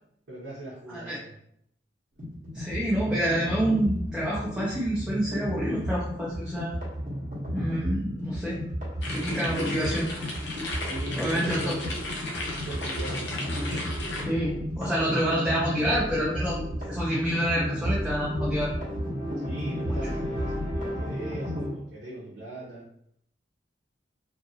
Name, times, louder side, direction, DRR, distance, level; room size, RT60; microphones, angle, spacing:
voice 1, 0.3-1.3 10.8-11.7 12.3-13.3 19.4-22.9, right 1 dB, 70° right, -7 dB, 0.8 m, -41 dB
sound 1, 2.2-21.7, equal, 45° right, 1.0 m, -33 dB
voice 2, 2.5-6.8 7.5-8.6 9.1-10.1 11.1-11.7 14.2-18.7 19.9-20.1, equal, 5° right, -8 dB, 0.5 m, -28 dB
sound 2, 9.0-14.2, left 1 dB, 75° left, 0.6 m, -35 dB
2.7 x 2.5 x 2.7 m, 0.71 s
head